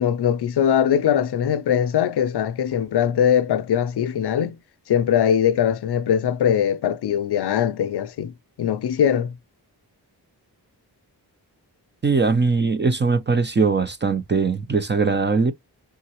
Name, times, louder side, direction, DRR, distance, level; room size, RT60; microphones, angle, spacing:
voice 1, 0.0-4.6 4.9-8.3 8.6-9.3, left 9 dB, 70° left, 0.6 m, -21 dB
voice 2, 12.0-15.5, right 4 dB, 25° right, 0.5 m, -20 dB
3.8 x 3.7 x 2.9 m
wide cardioid pair, 145°, 40 cm